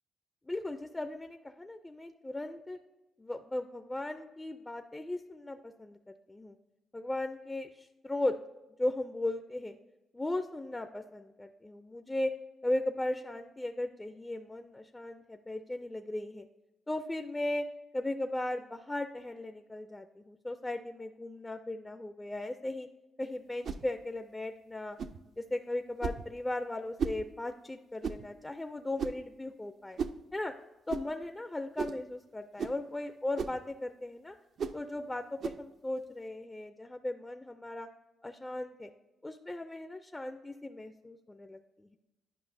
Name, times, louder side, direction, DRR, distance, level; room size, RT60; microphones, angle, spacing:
voice 1, 0.5-2.8 3.2-6.6 6.9-8.4 8.8-9.7 10.1-12.3 12.6-16.5 16.9-17.6 17.9-22.9 23.2-25.0 25.4-30.0 30.3-30.5 30.9-34.4 34.7-37.9 38.2-38.9 39.2-42.0, left 1 dB, 15° left, 7 dB, 0.4 m, -37 dB
sound 1, 23.6-23.9 25.0-25.2 26.0-26.3 27.0-27.2 28.0-28.3 29.0-29.3 30.0-30.2 30.9-31.1 31.8-32.0 32.6-32.8 33.4-33.6 34.6-34.8 35.4-35.6, right 6 dB, 60° right, 0.4 m, -35 dB
10.0 x 5.4 x 2.6 m, 0.99 s
cardioid pair, 90°, 0 cm